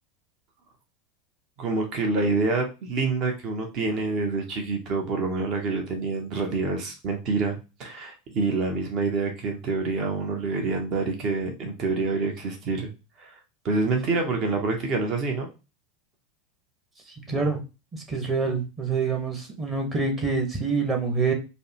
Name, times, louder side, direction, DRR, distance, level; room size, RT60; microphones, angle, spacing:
voice 1, 1.6-12.9 13.2-13.4 13.6-15.5 17.3-17.5, right 3 dB, 45° right, 3 dB, 1.0 m, -27 dB
voice 2, 17.3-17.6 17.9-21.3, right 4 dB, 25° right, 2 dB, 1.4 m, -26 dB
5.1 x 2.3 x 3.0 m, 0.29 s
figure-of-eight pair, 80°, 0 cm